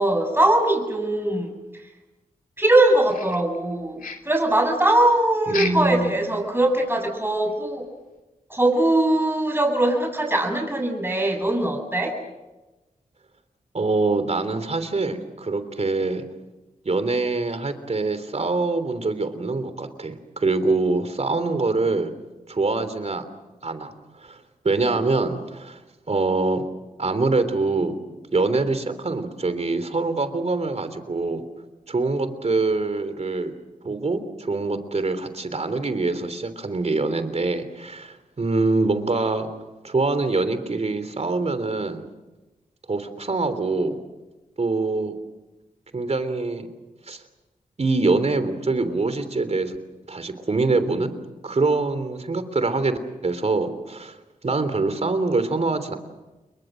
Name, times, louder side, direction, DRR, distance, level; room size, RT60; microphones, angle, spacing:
voice 1, 0.0-1.5 2.6-7.9 8.5-12.1, right 1 dB, 15° right, 2 dB, 7.6 m, -21 dB
sound 1, 3.1-3.7 4.0-4.4 5.5-6.0 6.3-6.4 6.9-7.0 7.5-7.6, left 5 dB, 75° left, 2.6 m, -33 dB
voice 2, 5.5-6.2 13.7-16.2 16.8-22.1 22.5-23.2 23.6-23.9 24.2-25.8 26.1-26.6 27.0-27.9 28.3-31.4 31.9-33.5 33.8-39.5 39.8-42.0 42.9-44.0 44.6-45.2 45.9-46.7 47.1-47.2 47.8-49.8 50.1-51.1 51.4-54.2 54.4-56.0, right 3 dB, 50° right, 11 dB, 3.3 m, -24 dB
29.5 x 22.5 x 6.5 m, 1.1 s
cardioid pair, 50°, 14 cm